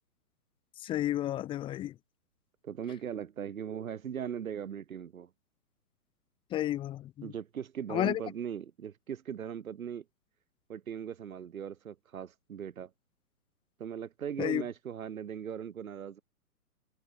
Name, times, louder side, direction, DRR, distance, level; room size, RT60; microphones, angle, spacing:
voice 1, 0.8-1.9 6.5-7.3 7.9-8.2 14.4-14.6, left 13 dB, 10° left, 1.4 m, -31 dB
voice 2, 2.6-5.3 7.2-10.0 10.7-12.9 13.8-16.2, right 8 dB, 60° right, 7.9 m, -39 dB
hypercardioid pair, 160°, 46 cm